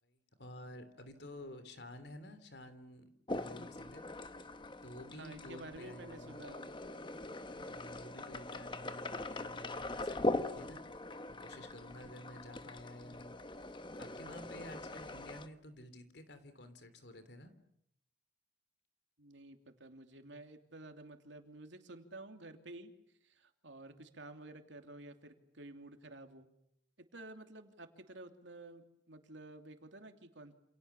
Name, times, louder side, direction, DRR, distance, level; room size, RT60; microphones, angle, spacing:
voice 1, 0.0-4.0 4.8-6.4 7.6-10.8 11.3-13.4 14.0-17.5, left 1 dB, 65° left, 10 dB, 3.3 m, -51 dB
sound 1, 3.3-15.5, left 2 dB, 25° left, 1.1 m, -42 dB
voice 2, 5.1-6.7 19.2-22.9 23.2-26.5 27.1-30.5, right 2 dB, 80° right, 6 dB, 2.9 m, -51 dB
29.0 x 28.0 x 7.1 m, 0.76 s
head